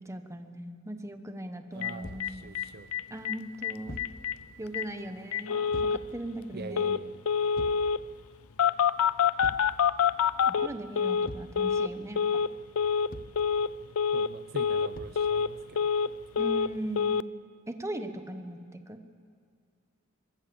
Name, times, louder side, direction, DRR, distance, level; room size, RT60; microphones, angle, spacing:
voice 1, 0.0-2.5 3.1-4.0 4.6-5.6 6.1-7.0 10.5-12.2 16.4-17.2 17.7-18.6 18.9-19.0, right 1 dB, 15° right, 7 dB, 1.3 m, -39 dB
voice 2, 1.7-2.9 6.5-7.2 14.1-15.8, right 3 dB, 50° right, 10 dB, 0.7 m, -43 dB
Telephone, 1.8-1.9 2.2-2.3 2.6-2.7 2.9-3.4 3.6-3.7 4.0-4.3 4.7-4.8 5.3-6.0 6.8-7.0 7.3-8.0 8.6-11.3 11.6-11.9 12.2-12.5 12.8-13.1 13.4-13.7 14.0-14.3 14.6-14.9 15.2-16.1 16.4-16.7 17.0-17.2, left 7 dB, 75° left, 0.5 m, -26 dB
Thump thud, 2.0-2.4 3.9-4.2 5.7-6.1 7.6-7.9 9.4-9.7 11.2-11.6 13.1-13.4 14.9-15.3, left 2 dB, 45° left, 1.1 m, -42 dB
25.0 x 22.0 x 7.1 m, 2.2 s
head